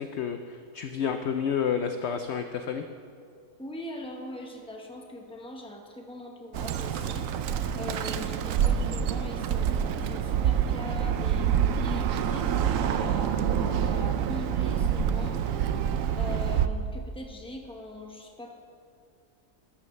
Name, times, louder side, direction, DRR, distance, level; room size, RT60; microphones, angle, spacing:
voice 1, 0.0-2.8, left 7 dB, 65° left, 7 dB, 0.7 m, -30 dB
voice 2, 3.6-7.3 7.7-15.6 16.1-18.5, left 1 dB, 5° left, 1 dB, 1.0 m, -41 dB
Bird, 6.5-16.7, right 8 dB, 70° right, 0.9 m, -27 dB
14.0 x 12.0 x 3.2 m, 2.3 s
omnidirectional pair, 1.6 m